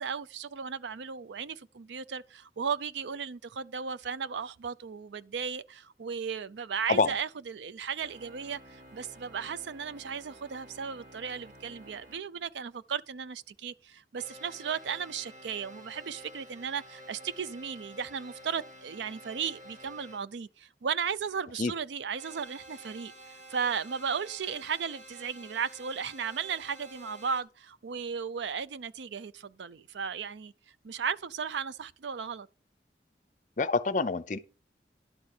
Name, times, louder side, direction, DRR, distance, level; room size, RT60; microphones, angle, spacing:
voice 1, 0.0-30.5 30.8-32.5, right 6 dB, 90° right, 0.5 m, -35 dB
sound 1, 8.0-12.2 14.1-20.2 22.1-27.4, right 1 dB, 45° right, 2.0 m, -51 dB
voice 2, 33.6-34.4, left 3 dB, 45° left, 0.6 m, -26 dB
11.0 x 4.3 x 6.5 m
head